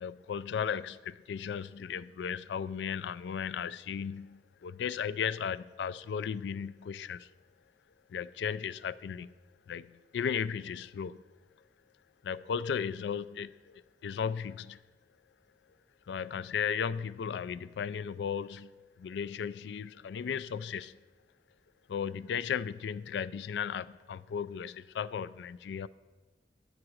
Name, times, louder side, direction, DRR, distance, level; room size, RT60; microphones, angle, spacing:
voice 1, 0.0-7.3 8.1-9.3 9.7-11.2 12.2-14.8 16.1-18.7 19.0-21.0 21.9-25.9, left 7 dB, 70° left, 0.3 m, -35 dB
9.9 x 4.7 x 6.3 m
head